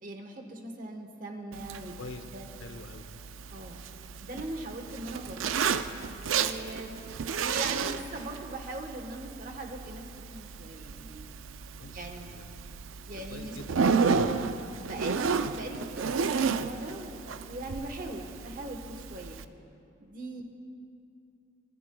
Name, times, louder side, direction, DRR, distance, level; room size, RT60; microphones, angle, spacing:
voice 1, 0.0-1.9 2.3-2.5 3.5-3.8 4.2-5.7 6.3-7.0 7.4-11.3 11.8-12.3 13.1-13.6 13.9-14.6 14.9-19.4 20.0-20.4, right 1 dB, 45° right, 4 dB, 1.2 m, -40 dB
Zipper (clothing), 1.5-19.4, right 5 dB, 85° right, 0.4 m, -33 dB
voice 2, 2.6-3.1 11.8-12.6 13.1-13.7, left 3 dB, 80° left, 8 dB, 0.8 m, -45 dB
27.0 x 11.0 x 2.3 m, 2.6 s
head